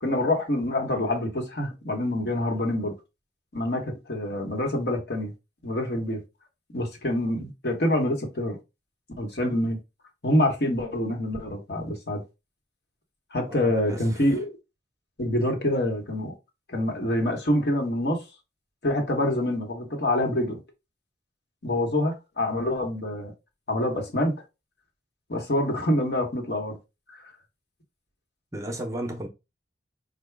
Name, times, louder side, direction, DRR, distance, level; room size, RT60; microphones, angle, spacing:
voice 1, 0.0-2.9 3.5-5.3 5.6-6.2 6.7-8.6 9.2-9.8 10.2-12.2 13.3-14.5 15.2-16.3 16.7-18.2 18.8-20.6 21.6-23.3 23.7-24.3 25.3-26.8 27.1-27.2, left 1 dB, 60° left, 1.1 m, -26 dB
voice 2, 13.5-14.0 28.5-29.3, right 1 dB, 15° right, 0.6 m, -34 dB
4.7 x 2.2 x 3.2 m
head